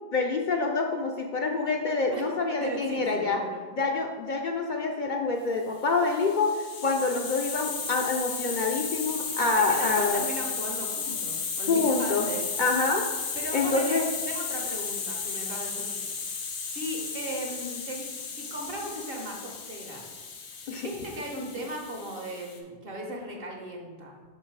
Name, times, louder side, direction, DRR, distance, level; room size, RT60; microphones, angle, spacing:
voice 1, 0.1-3.4 3.7-10.2 11.7-12.3 12.6-13.1 13.5-14.1 20.7-20.9, left 3 dB, 55° left, 2 dB, 0.6 m, -26 dB
voice 2, 2.6-3.6 9.5-12.5 13.3-16.0 16.2-16.4 16.6-20.2 20.5-24.2, right 1 dB, 60° right, 1 dB, 1.2 m, -37 dB
Hiss, 5.9-22.6, left 5 dB, 80° left, 1.1 m, -34 dB
5.7 x 4.5 x 4.6 m, 1.4 s
omnidirectional pair, 1.1 m